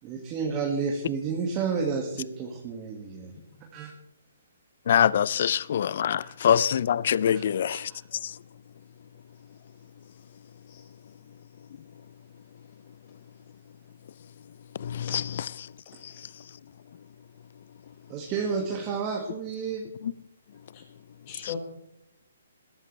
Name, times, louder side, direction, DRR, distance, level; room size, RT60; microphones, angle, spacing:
voice 1, 0.0-3.3 3.7-3.9 6.2-6.3 7.3-8.0 18.1-19.9, right 5 dB, 25° right, 1.9 m, -31 dB
voice 2, 4.9-7.9 14.8-15.2, left 9 dB, 55° left, 0.4 m, -24 dB
voice 3, 15.9-16.2 20.7-20.8 21.3-21.6, left 11 dB, 35° left, 5.3 m, -40 dB
21.0 x 13.5 x 3.3 m
hypercardioid pair, 150°, 0 cm